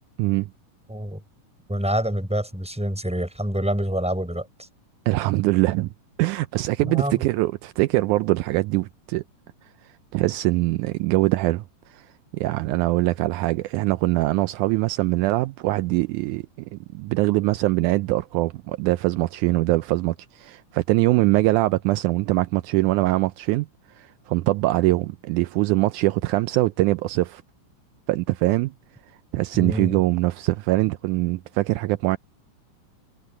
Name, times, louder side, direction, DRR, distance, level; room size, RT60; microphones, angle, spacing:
voice 1, 0.9-1.2 1.7-4.7 6.8-7.2 29.5-30.0, equal, ahead, 5.1 m, -27 dB
voice 2, 5.1-5.9 6.2-9.2 10.1-12.1 12.3-16.4 16.7-23.7 24.0-27.4 28.1-28.7 29.3-32.2, right 19 dB, 80° right, 1.9 m, -23 dB
omnidirectional pair, 3.7 m